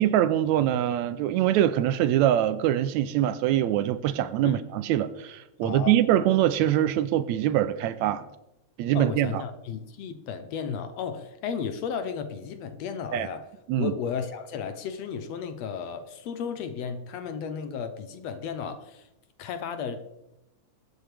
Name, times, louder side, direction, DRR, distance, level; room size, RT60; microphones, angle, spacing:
voice 1, 0.0-8.3 8.8-9.3 13.1-13.3 13.7-13.9, right 12 dB, 80° right, 1.8 m, -23 dB
voice 2, 5.6-6.0 8.9-19.1 19.4-20.1, left 7 dB, 70° left, 1.8 m, -34 dB
21.5 x 9.2 x 3.4 m
omnidirectional pair, 3.4 m